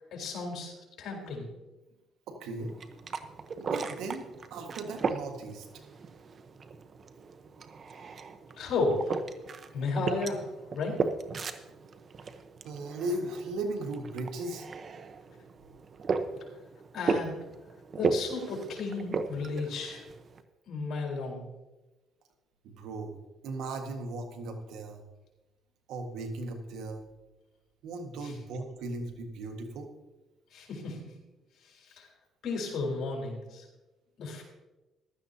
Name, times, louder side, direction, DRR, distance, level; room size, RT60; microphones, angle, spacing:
voice 1, 0.1-1.5 8.6-9.2 9.7-11.0 16.9-17.4 18.0-20.0 20.7-21.4 28.2-28.3 30.5-31.2 31.6-32.1 32.4-33.7 34.2-34.4, left 3 dB, 65° left, -1 dB, 4.0 m, -33 dB
voice 2, 2.3-2.7 3.6-5.7 12.6-14.7 22.6-23.2 23.4-25.0 25.9-27.0 27.8-29.9, right 2 dB, 80° right, 5 dB, 1.6 m, -37 dB
sound 1, 2.6-20.4, right 4 dB, 45° right, 0.9 m, -36 dB
15.5 x 12.0 x 2.8 m, 1.1 s
supercardioid pair, 80°, 0 cm